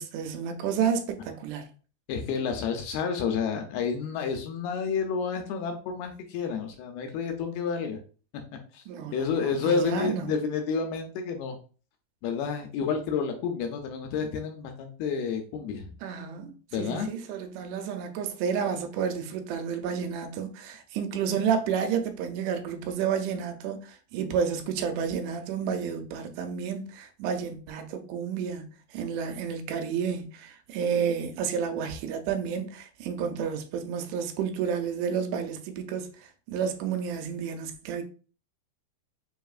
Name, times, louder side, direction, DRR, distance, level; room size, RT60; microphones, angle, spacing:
voice 1, 0.0-1.7 8.9-10.3 16.0-38.0, right 7 dB, 85° right, 2.7 m, -31 dB
voice 2, 2.1-8.0 8.7-8.8 9.1-11.6 12.2-15.9 16.7-17.1, left 6 dB, 80° left, 2.3 m, -30 dB
6.0 x 2.8 x 2.4 m
omnidirectional pair, 4.7 m